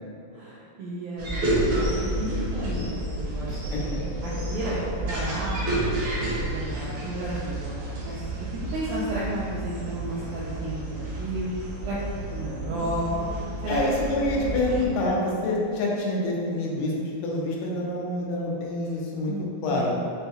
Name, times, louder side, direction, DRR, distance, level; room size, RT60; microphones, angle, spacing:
voice 1, 0.3-3.6 4.2-5.9 6.5-11.5 11.8-12.0 12.3-13.3 13.6-13.8 14.5-15.0 19.3-19.9, right 1 dB, 90° right, -7 dB, 1.7 m, -33 dB
sound 1, 1.2-14.9, right 1 dB, 70° right, 1.9 m, -30 dB
voice 2, 13.7-19.9, left 1 dB, 80° left, -3 dB, 2.1 m, -27 dB
6.3 x 2.2 x 2.7 m, 2.6 s
omnidirectional pair, 4.0 m